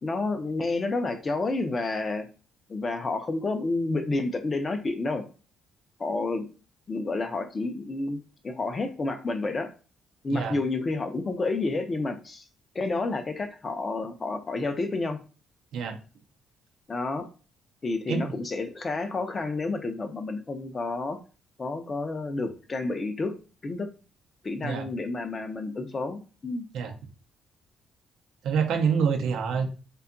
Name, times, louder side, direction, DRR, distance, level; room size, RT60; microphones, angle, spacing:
voice 1, 0.0-2.3 2.7-5.3 6.0-6.5 6.9-9.7 10.2-12.4 12.7-15.2 16.9-17.3 17.8-21.2 21.6-23.4 23.6-23.9 24.4-26.7, left 3 dB, 30° left, 7 dB, 0.4 m, -30 dB
voice 2, 28.4-29.7, right 6 dB, 75° right, 6 dB, 0.5 m, -26 dB
2.7 x 2.2 x 2.5 m, 0.34 s
cardioid pair, 120°, 0 cm